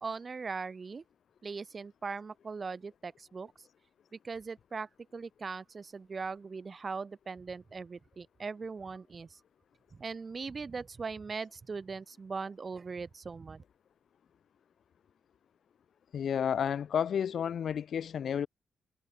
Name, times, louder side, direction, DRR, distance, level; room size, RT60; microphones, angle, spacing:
voice 1, 0.0-1.0 1.4-3.7 4.1-9.4 9.9-13.6, right 4 dB, 30° right, 0.7 m, -40 dB
voice 2, 16.1-18.5, left 8 dB, 55° left, 0.3 m, -31 dB
wide cardioid pair, 150°, 0 cm